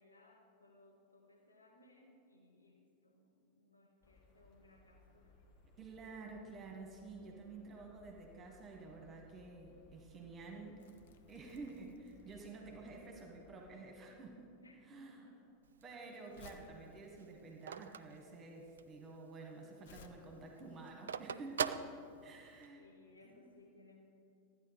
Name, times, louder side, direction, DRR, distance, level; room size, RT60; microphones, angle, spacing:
voice 1, 0.0-5.4 14.6-15.5 22.7-24.0, left 2 dB, 80° left, 0 dB, 1.0 m, -64 dB
sound 1, 4.0-13.7, left 2 dB, 35° left, 1.4 m, -65 dB
voice 2, 5.8-11.0 11.3-14.5 14.9-15.3 15.8-21.8 22.2-22.8 23.2-23.5, right 3 dB, 25° right, 2 dB, 1.3 m, -51 dB
Crumpling crinkling, 10.8-20.1, left 6 dB, 55° left, 0.7 m, -63 dB
Telephone, 15.6-19.0 19.4-19.5 19.8-22.7, right 7 dB, 65° right, 0.3 m, -42 dB
12.5 x 9.4 x 4.0 m, 2.6 s
figure-of-eight pair, 90°, 0 cm